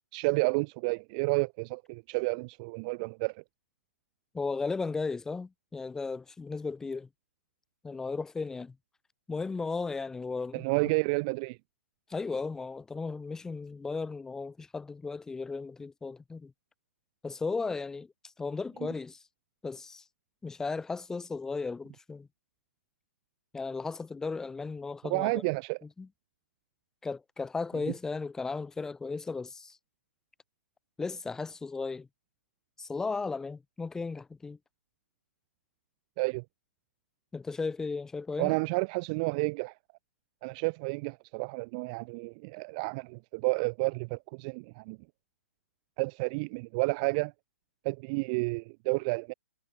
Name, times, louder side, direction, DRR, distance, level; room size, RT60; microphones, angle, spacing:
voice 1, 0.1-3.4 10.5-11.6 25.0-25.8 36.2-36.4 38.4-39.7 40.4-45.0 46.0-47.3 47.8-49.3, right 30 dB, 30° right, 0.4 m, -30 dB
voice 2, 4.3-7.1 7.8-8.7 9.3-10.6 12.1-16.5 17.2-18.1 18.4-19.2 19.6-20.0 20.4-22.3 23.5-25.3 26.0-26.1 27.0-29.8 31.0-32.1 32.8-34.6 37.3-38.6, left 4 dB, 5° left, 1.4 m, -35 dB
hypercardioid pair, 140°, 8 cm